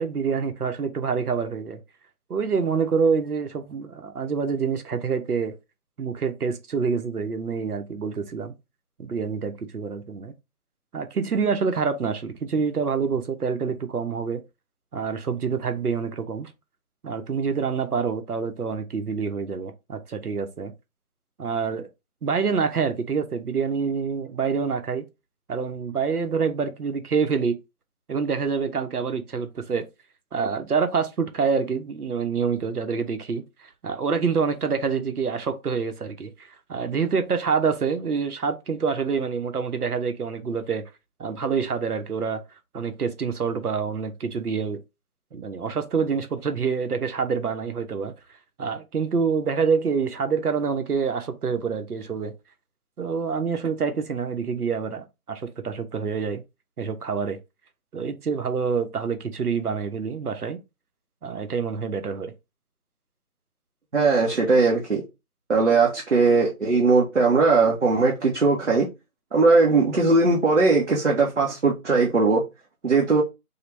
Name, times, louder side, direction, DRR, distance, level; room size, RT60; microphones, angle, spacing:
voice 1, 0.0-1.8 2.3-5.5 6.0-8.5 9.0-10.3 10.9-14.4 14.9-16.5 17.0-20.7 21.4-21.9 22.2-25.0 25.5-27.6 28.1-29.8 30.3-40.9 41.2-42.4 42.7-44.8 45.3-48.1 48.6-52.3 53.0-56.4 56.8-57.4 57.9-60.6 61.2-62.3, right 5 dB, 80° right, 0.9 m, -26 dB
voice 2, 63.9-65.0 65.5-68.9 69.3-72.4 72.8-73.2, right 3 dB, 50° right, 0.8 m, -19 dB
3.2 x 2.3 x 3.2 m
figure-of-eight pair, 175°, 45 cm